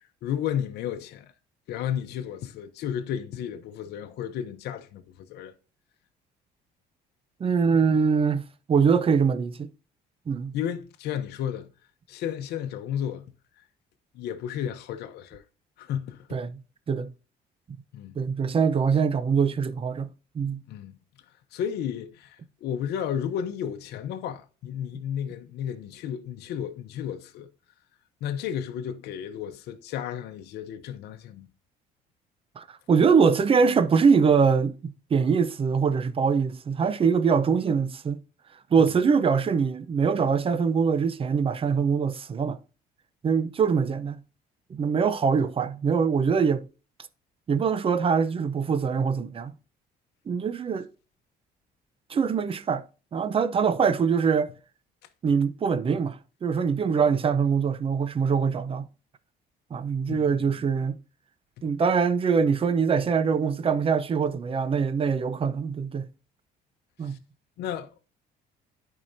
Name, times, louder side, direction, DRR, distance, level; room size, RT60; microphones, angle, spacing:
voice 1, 0.2-1.3 1.7-5.0 5.3-5.5 10.5-11.7 12.1-13.3 14.1-15.4 15.8-16.4 17.9-18.2 20.7-21.0 21.5-27.5 28.2-31.5 38.8-38.9 45.3-45.5 60.1-60.5 67.0-67.2 67.6-67.9, left 9 dB, 75° left, 0.8 m, -33 dB
voice 2, 7.4-8.4 8.7-9.7 10.3-10.5 16.3-16.6 16.9-17.1 18.2-20.1 20.3-20.6 32.6-38.2 38.7-42.6 43.2-44.2 44.7-46.7 47.5-49.5 50.3-50.9 52.1-52.8 53.1-54.5 55.2-58.9 59.7-61.0 61.6-66.1 67.0-67.2, right 6 dB, 35° right, 0.7 m, -23 dB
11.0 x 4.8 x 2.7 m
cardioid pair, 110°, 17 cm